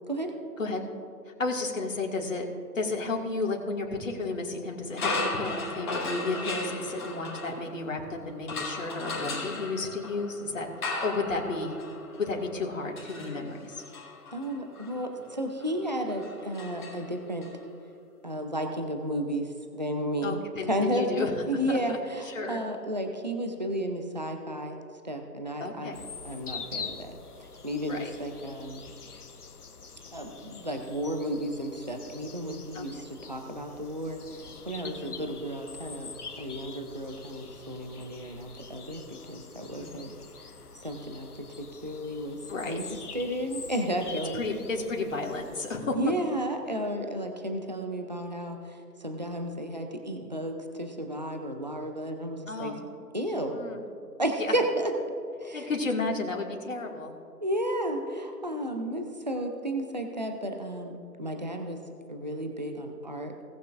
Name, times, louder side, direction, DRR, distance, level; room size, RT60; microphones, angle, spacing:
voice 1, 1.3-2.5 2.7-10.7 11.0-11.8 12.2-13.8 20.2-21.3 21.7-22.0 22.2-22.6 25.6-26.0 27.9-28.1 32.7-33.0 34.8-35.1 39.8-40.1 42.5-42.8 44.3-46.0 47.4-47.7 52.5-52.8 53.5-53.8 54.4-54.5 55.5-57.1, left 3 dB, 50° left, 0 dB, 2.2 m, -32 dB
sound 1, 4.9-8.0 8.5-17.5, left 2 dB, 30° left, 2.4 m, -36 dB
voice 2, 14.3-17.5 18.2-20.4 20.7-24.8 25.0-28.8 30.1-36.1 36.4-40.1 40.8-44.4 45.9-52.7 53.1-53.6 54.2-54.9 55.4-55.7 57.4-61.8 62.1-63.3, equal, 30° right, 5 dB, 0.5 m, -33 dB
sound 2, 25.9-45.8, left 5 dB, 65° left, 1.0 m, -45 dB
18.5 x 8.3 x 2.5 m, 2.7 s
figure-of-eight pair, 150°, 48 cm